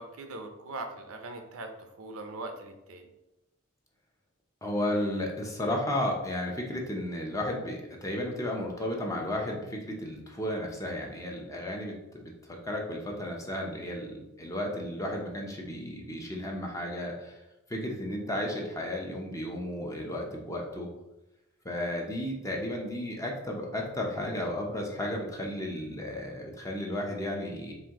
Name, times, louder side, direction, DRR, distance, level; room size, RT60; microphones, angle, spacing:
voice 1, 0.0-3.1, right 2 dB, 75° right, 5 dB, 0.6 m, -41 dB
voice 2, 4.6-17.4 17.7-20.9 21.6-27.7, left 1 dB, 15° left, 0 dB, 0.6 m, -33 dB
4.4 x 2.6 x 3.6 m, 0.96 s
head